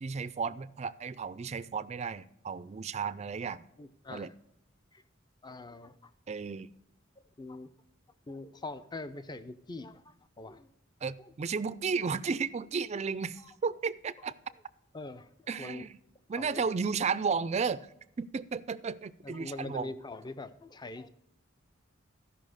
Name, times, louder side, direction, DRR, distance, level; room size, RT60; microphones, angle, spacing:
voice 1, 0.0-3.6 4.1-4.3 6.3-6.7 11.0-14.3 15.5-16.0 16.3-17.9 18.2-19.9, right 5 dB, 35° right, 16 dB, 0.4 m, -33 dB
voice 2, 3.8-4.3 4.9-5.0 5.4-6.1 7.4-7.7 8.3-10.7 11.2-11.3 13.4-13.5 14.9-15.9 16.4-16.7 19.2-21.1, left 2 dB, 20° left, 13 dB, 0.5 m, -43 dB
12.5 x 5.6 x 6.4 m, 0.80 s
head